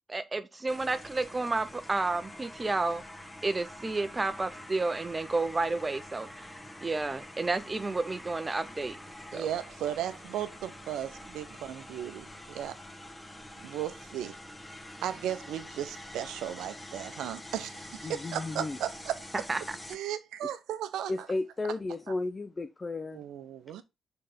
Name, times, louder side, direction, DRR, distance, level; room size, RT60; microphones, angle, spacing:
voice 1, 0.1-3.0 3.4-6.5 6.8-9.0 9.3-9.5 19.5-19.6, right 3 dB, 25° right, 0.6 m, -31 dB
sound 1, 0.7-19.9, left 1 dB, 15° left, 1.4 m, -46 dB
voice 2, 9.3-12.8 13.6-14.4 15.0-19.3 19.9-21.3 23.1-23.8, right 11 dB, 70° right, 0.6 m, -36 dB
voice 3, 18.0-18.8 21.1-23.2, left 2 dB, 30° left, 0.5 m, -33 dB
6.5 x 3.9 x 3.7 m
hypercardioid pair, 45°, 0 cm